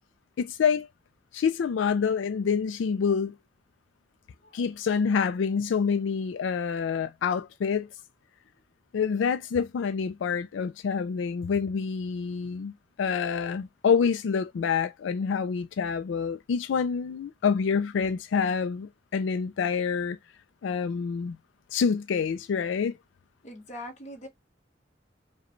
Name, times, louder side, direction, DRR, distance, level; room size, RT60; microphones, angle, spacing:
voice 1, 0.4-0.9 1.3-3.3 4.5-7.9 8.9-20.2 20.6-21.4 21.7-22.9, left 6 dB, 85° left, 0.3 m, -27 dB
voice 2, 23.4-24.3, left 1 dB, 40° left, 1.1 m, -42 dB
4.9 x 2.2 x 3.0 m
head